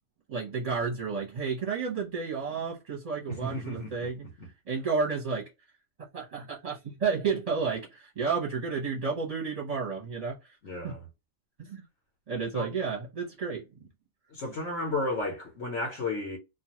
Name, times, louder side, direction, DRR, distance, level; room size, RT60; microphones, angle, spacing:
voice 1, 0.3-4.3 4.7-5.5 6.0-10.4 10.8-11.0 11.6-11.8 12.3-13.6, right 5 dB, 40° right, 0.7 m, -31 dB
voice 2, 3.3-4.5 10.6-11.0 12.5-12.7 14.3-16.4, left 2 dB, 90° left, 1.1 m, -33 dB
2.4 x 2.3 x 2.8 m
omnidirectional pair, 1.2 m